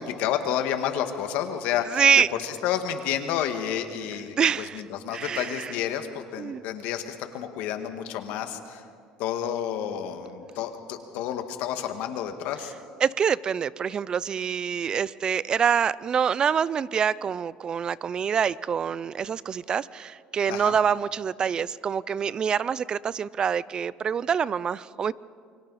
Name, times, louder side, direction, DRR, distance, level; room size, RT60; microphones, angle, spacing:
voice 1, 0.0-2.0 2.4-8.8 9.2-12.7 20.5-20.8, left 9 dB, 75° left, 7 dB, 1.8 m, -30 dB
voice 2, 1.9-2.3 4.1-4.8 5.1-5.7 6.4-6.6 13.0-25.1, right 7 dB, 30° right, 21 dB, 0.4 m, -26 dB
28.5 x 23.5 x 4.2 m, 2.2 s
cardioid pair, 130°, 3 cm